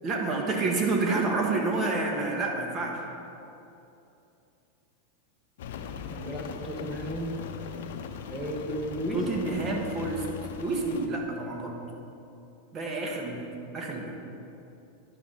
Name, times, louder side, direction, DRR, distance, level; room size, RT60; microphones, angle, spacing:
voice 1, 0.0-3.0 9.1-10.2 10.6-11.8 12.7-13.5 13.7-14.1, right 3 dB, 30° right, 0 dB, 1.3 m, -29 dB
Rain, 5.6-11.1, left 6 dB, 75° left, 0.6 m, -39 dB
voice 2, 6.1-7.4 8.3-9.3, equal, 5° right, -1 dB, 1.1 m, -34 dB
10.0 x 5.8 x 3.9 m, 2.8 s
supercardioid pair, 125°, 0 cm